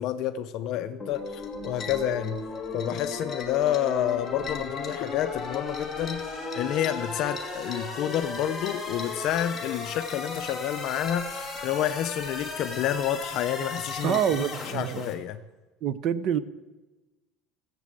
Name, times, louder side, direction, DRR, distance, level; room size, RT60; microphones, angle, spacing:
voice 1, 0.0-2.4 2.7-6.2 6.6-14.2 14.7-15.4, left 11 dB, 45° left, 9 dB, 0.6 m, -29 dB
sound 1, 1.0-15.1, left 3 dB, 5° right, 3.1 m, -36 dB
sound 2, 1.1-14.4, left 5 dB, 20° left, 1.6 m, -45 dB
voice 2, 14.0-15.1 15.8-16.4, right 9 dB, 40° right, 16 dB, 0.7 m, -26 dB
17.0 x 7.4 x 7.7 m, 1.2 s
cardioid pair, 160°, 0 cm